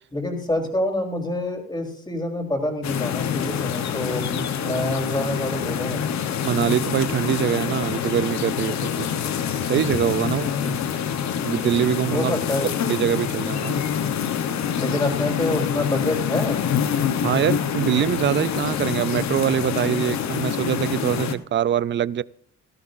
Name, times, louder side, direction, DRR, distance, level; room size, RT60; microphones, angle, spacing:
voice 1, 0.1-6.1 10.3-10.8 12.1-12.7 14.8-16.6, left 1 dB, 15° left, 3.8 m, -27 dB
sound 1, 2.8-21.3, left 8 dB, 65° left, 1.1 m, -26 dB
voice 2, 6.4-9.1 9.6-10.5 11.4-12.3 12.9-13.8 17.2-22.2, right 10 dB, 40° right, 0.4 m, -23 dB
17.0 x 13.0 x 2.6 m
cardioid pair, 90°, 30 cm